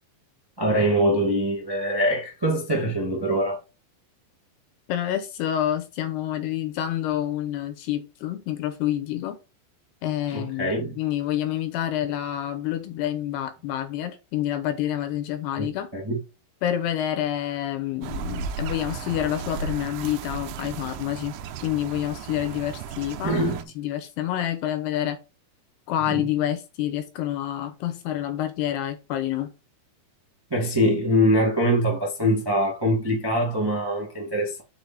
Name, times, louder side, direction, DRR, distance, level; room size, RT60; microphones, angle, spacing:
voice 1, 0.6-3.6 10.3-11.0 15.6-15.7 15.9-16.2 23.2-23.7 26.1-26.3 30.5-34.6, equal, 35° right, 0.4 m, -23 dB
voice 2, 4.9-9.4 10.0-15.9 16.6-21.4 21.6-23.4 23.8-25.2 25.9-29.5, left 12 dB, 75° left, 2.7 m, -28 dB
sound 1, 18.0-23.6, right 6 dB, 90° right, 2.9 m, -35 dB
6.8 x 5.0 x 4.4 m
omnidirectional pair, 5.2 m